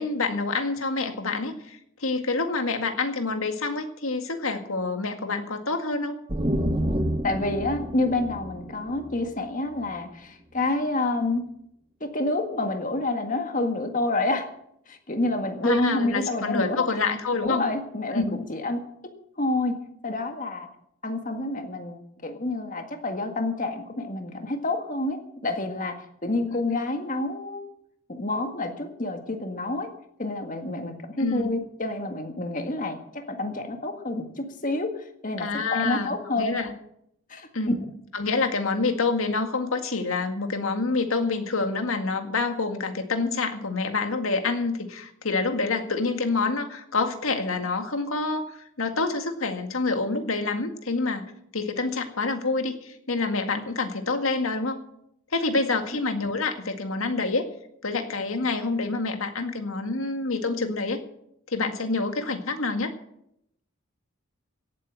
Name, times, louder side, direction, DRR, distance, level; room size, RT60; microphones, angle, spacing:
voice 1, 0.0-6.2 15.6-17.7 18.1-18.4 26.5-26.6 31.2-31.5 35.4-36.7 37.5-37.8 38.1-48.5 48.8-51.3 51.5-54.8 55.3-57.5 57.8-61.0 61.5-62.9, left 3 dB, 80° left, 6 dB, 1.9 m, -27 dB
sound 1, 6.3-9.9, equal, 25° right, 1.0 m, -29 dB
voice 2, 7.2-11.5 12.0-14.5 14.9-16.9 17.4-18.9 19.4-20.7 21.0-27.7 28.1-29.9 30.2-36.5 37.3-37.7, left 2 dB, 40° left, 5 dB, 1.8 m, -28 dB
17.5 x 8.6 x 7.5 m, 0.74 s
head